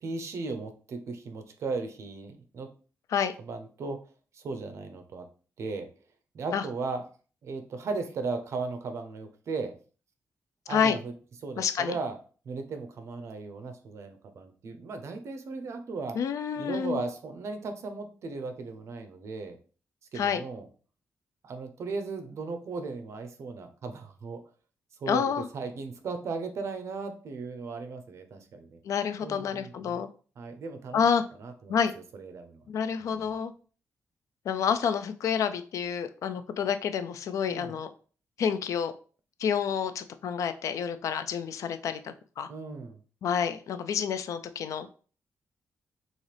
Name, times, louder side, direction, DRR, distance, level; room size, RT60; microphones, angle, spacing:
voice 1, 0.0-2.7 3.4-4.0 4.3-5.2 5.6-5.9 6.3-7.0 7.4-9.7 10.7-11.1 11.4-12.2 12.5-16.2 16.6-19.6 20.1-20.6 21.4-24.4 25.0-28.8 29.2-30.0 30.4-31.0 31.4-31.8 32.1-32.6 33.0-33.3 37.5-37.7 42.5-43.0, right 4 dB, 60° right, 0.8 m, -36 dB
voice 2, 11.6-12.0 16.1-17.0 20.1-20.4 25.1-25.5 28.8-30.1 30.9-31.2 31.7-31.9 32.7-33.5 34.5-37.9 38.4-38.9 39.4-42.5 43.2-44.9, left 7 dB, 75° left, 0.4 m, -28 dB
6.3 x 2.5 x 3.3 m
wide cardioid pair, 150°, 6 cm